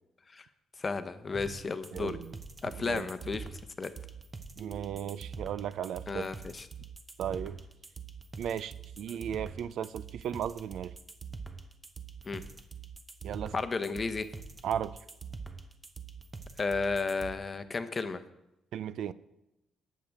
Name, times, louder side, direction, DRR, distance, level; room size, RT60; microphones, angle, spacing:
voice 1, 0.8-2.2 2.6-3.5 3.8-3.9 6.1-6.7 12.2-12.4 13.5-14.3 16.6-18.2, left 4 dB, 35° left, 10 dB, 0.7 m, -33 dB
sound 1, 1.3-17.3, right 5 dB, 30° right, 0.8 m, -44 dB
voice 2, 1.9-2.4 2.8-3.1 4.6-6.3 7.2-7.6 8.4-10.9 13.2-13.5 14.6-15.0 18.7-19.1, right 9 dB, 75° right, 16 dB, 0.4 m, -36 dB
18.0 x 6.6 x 3.5 m, 0.91 s
cardioid pair, 90°, 0 cm